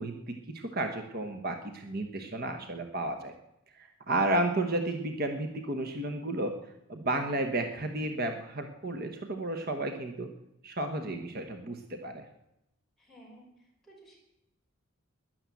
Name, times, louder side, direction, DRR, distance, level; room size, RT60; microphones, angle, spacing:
voice 1, 0.0-3.3 3.8-6.6 6.9-10.3 10.6-12.2, right 2 dB, 45° right, 6 dB, 1.1 m, -32 dB
voice 2, 13.0-14.2, right 1 dB, ahead, -4 dB, 4.9 m, -55 dB
12.0 x 10.5 x 8.3 m, 0.85 s
head